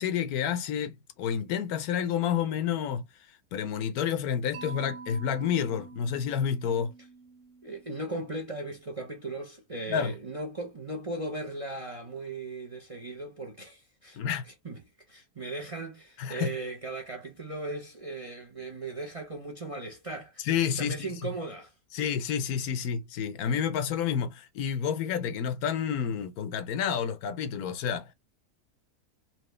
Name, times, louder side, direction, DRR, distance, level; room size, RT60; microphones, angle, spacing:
voice 1, 0.0-3.0 3.5-6.9 9.9-10.1 14.2-14.4 16.2-16.6 20.4-21.1 21.9-28.1, left 8 dB, 80° left, 1.2 m, -29 dB
Mallet percussion, 4.5-8.5, right 4 dB, 80° right, 1.4 m, -47 dB
voice 2, 7.6-14.2 14.4-14.8 15.1-20.5 20.8-21.7, right 2 dB, 35° right, 0.6 m, -37 dB
4.4 x 2.5 x 3.2 m
omnidirectional pair, 1.6 m